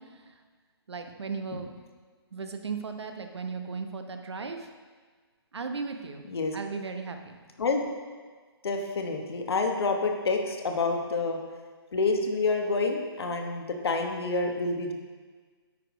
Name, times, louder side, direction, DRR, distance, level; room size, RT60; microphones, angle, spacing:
voice 1, 0.9-1.7 2.3-4.7 5.5-6.2 6.5-7.4, right 4 dB, 85° right, 6 dB, 1.0 m, -36 dB
voice 2, 8.6-11.4 11.9-14.9, left 3 dB, 70° left, 3 dB, 1.2 m, -28 dB
8.8 x 5.0 x 5.0 m, 1.5 s
hypercardioid pair, 160°, 14 cm